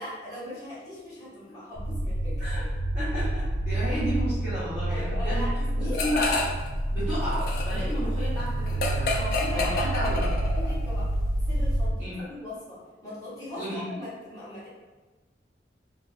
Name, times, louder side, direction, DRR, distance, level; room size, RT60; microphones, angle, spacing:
voice 1, 0.0-2.4 4.9-6.0 9.1-10.1 10.6-11.1 11.4-14.7, left 1 dB, 20° left, -10 dB, 0.9 m, -39 dB
sound 1, 1.8-11.9, right 1 dB, 70° right, 0.3 m, -28 dB
voice 2, 2.9-5.5 5.8-6.5 6.9-9.2 9.6-10.3 12.0-12.2 13.6-13.9, equal, 10° right, -14 dB, 0.7 m, -32 dB
sound 2, 5.9-6.7 7.0-10.8, left 3 dB, 55° left, 0.3 m, -30 dB
2.4 x 2.1 x 2.4 m, 1.2 s
head